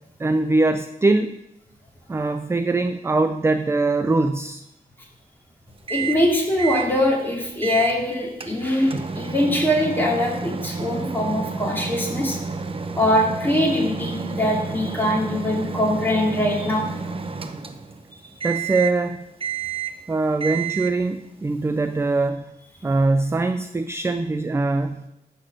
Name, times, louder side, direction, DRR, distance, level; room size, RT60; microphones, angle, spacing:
voice 1, 0.2-1.4 2.1-4.6 18.4-19.2 20.1-22.5 22.8-25.1, right 2 dB, 15° right, 10 dB, 0.3 m, -22 dB
voice 2, 5.9-12.4 13.0-16.8, left 1 dB, 10° left, -3 dB, 2.5 m, -22 dB
Microwave oven, 5.9-6.3 6.6-6.9 7.6-8.0 8.4-18.0 18.4-19.0 19.4-20.0 20.4-21.0, right 5 dB, 35° right, 0.7 m, -30 dB
11.5 x 4.3 x 7.6 m, 0.88 s
wide cardioid pair, 155°, 16 cm